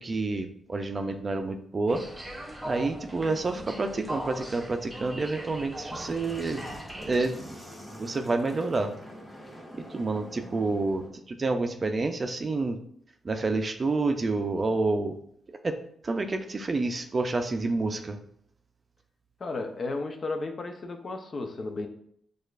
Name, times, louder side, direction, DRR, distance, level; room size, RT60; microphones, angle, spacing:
voice 1, 0.0-2.0 2.6-6.6 7.1-7.6 8.0-8.9 9.9-11.0 11.3-12.8 13.2-15.1 15.6-15.8 16.0-18.2, right 3 dB, 35° right, 6 dB, 0.4 m, -28 dB
sound 1, 1.9-7.3, equal, 15° right, 0.9 m, -40 dB
sound 2, 5.7-11.1, equal, 10° left, 1.6 m, -45 dB
voice 2, 19.4-21.9, left 3 dB, 50° left, 5 dB, 0.6 m, -33 dB
6.3 x 2.4 x 2.4 m, 0.67 s
cardioid pair, 75°, 0 cm